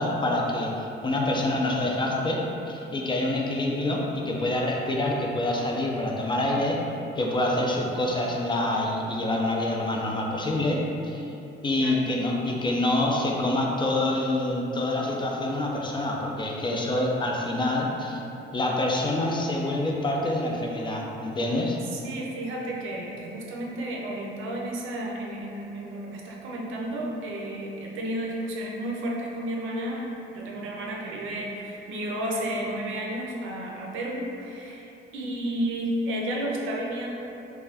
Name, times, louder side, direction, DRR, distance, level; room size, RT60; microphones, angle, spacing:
voice 1, 0.0-6.8 7.2-11.4 11.6-18.2 18.5-21.8, left 1 dB, 25° left, -1 dB, 0.4 m, -26 dB
voice 2, 21.9-30.1 30.3-37.1, right 1 dB, 85° right, -2 dB, 0.5 m, -32 dB
2.4 x 2.2 x 3.3 m, 2.8 s
cardioid pair, 90°, 20 cm